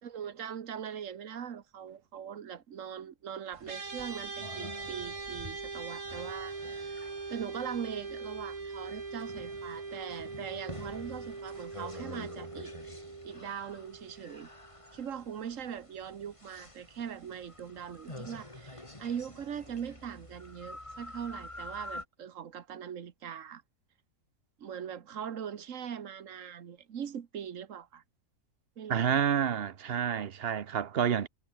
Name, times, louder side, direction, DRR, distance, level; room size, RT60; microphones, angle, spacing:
voice 1, 0.0-7.0 7.3-12.7 13.2-14.5 14.9-23.6 24.6-28.0 28.8-29.2, right 8 dB, 65° right, 1.5 m, -41 dB
sound 1, 3.5-22.0, left 1 dB, 20° left, 3.6 m, -48 dB
sound 2, 3.7-15.1, right 4 dB, 85° right, 3.4 m, -42 dB
voice 2, 28.9-31.3, right 8 dB, 50° right, 1.0 m, -29 dB
omnidirectional pair, 1.4 m